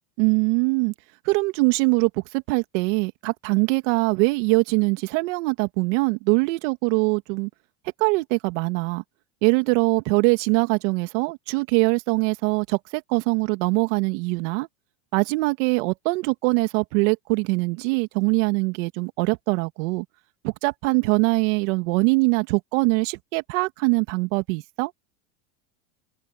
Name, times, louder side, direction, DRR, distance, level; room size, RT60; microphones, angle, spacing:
voice 1, 0.2-0.9 1.3-7.5 8.0-9.0 9.4-14.7 15.1-20.0 20.4-24.9, right 29 dB, 65° right, 2.3 m, -22 dB
open air
supercardioid pair, 120°, 39 cm